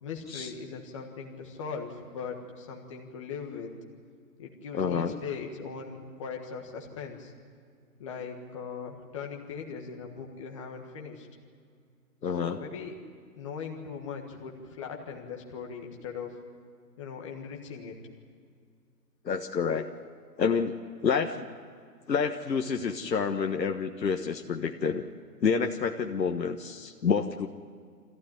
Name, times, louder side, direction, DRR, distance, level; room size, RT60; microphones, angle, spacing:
voice 1, 0.0-3.7 4.4-7.3 8.0-11.3 12.4-12.9 13.4-16.4 17.0-17.9, left 5 dB, 20° left, 1 dB, 1.5 m, -39 dB
voice 2, 4.7-5.2 12.2-12.6 19.2-19.9 20.4-20.7 21.0-21.5 22.1-25.0 25.4-27.5, left 6 dB, 85° left, 4 dB, 1.5 m, -28 dB
25.0 x 15.0 x 10.0 m, 2.2 s
hypercardioid pair, 170°, 49 cm